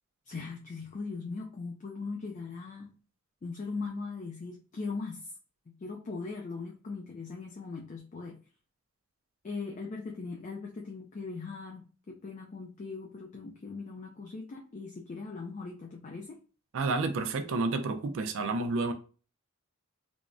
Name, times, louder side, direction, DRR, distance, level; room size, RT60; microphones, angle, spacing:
voice 1, 0.3-2.9 3.4-5.3 5.7-8.4 9.4-16.4, left 4 dB, 35° left, 1 dB, 0.3 m, -40 dB
voice 2, 16.7-18.9, right 3 dB, 65° right, 8 dB, 0.4 m, -30 dB
3.4 x 2.0 x 2.4 m, 0.37 s
head